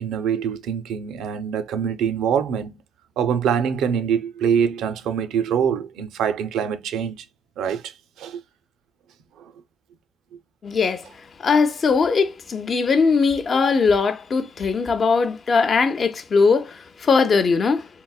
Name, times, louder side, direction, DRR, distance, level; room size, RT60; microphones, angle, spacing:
voice 1, 0.0-2.8 3.2-7.2 7.6-8.4 9.4-9.5, right 8 dB, 85° right, 0.4 m, -24 dB
voice 2, 10.6-11.1 11.4-17.9, left 5 dB, 45° left, 0.4 m, -20 dB
3.7 x 2.0 x 2.2 m
cardioid pair, 90°, 0 cm